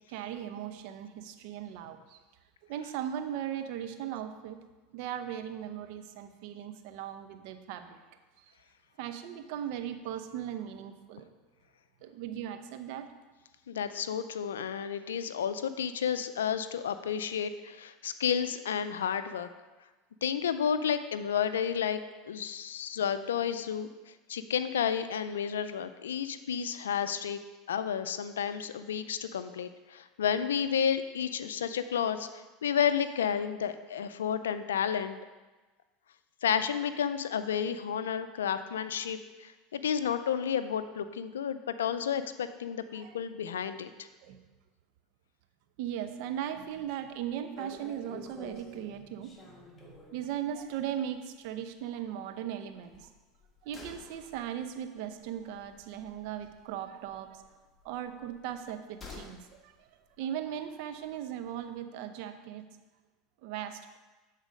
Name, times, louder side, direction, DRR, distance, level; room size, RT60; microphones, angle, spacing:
voice 1, 0.1-2.2 2.7-4.6 4.9-8.1 8.4-8.5 9.0-11.3 12.0-13.1 42.9-43.2 44.2-44.4 45.8-53.1 53.6-57.4 57.8-59.9 60.2-62.7 63.4-64.0, right 10 dB, 65° right, 8 dB, 0.6 m, -38 dB
voice 2, 13.7-19.5 20.2-22.0 22.2-23.9 24.3-27.4 27.7-35.1 36.4-43.9, left 8 dB, 90° left, 11 dB, 0.4 m, -31 dB
sound 1, 46.6-46.9 47.2-47.3 47.6-50.3 50.6-50.8 51.1-51.2 52.8-56.8 57.0-59.5 59.7-59.8, left 3 dB, 20° left, 1.5 m, -50 dB
8.1 x 4.0 x 5.1 m, 1.2 s
hypercardioid pair, 90°, 0 cm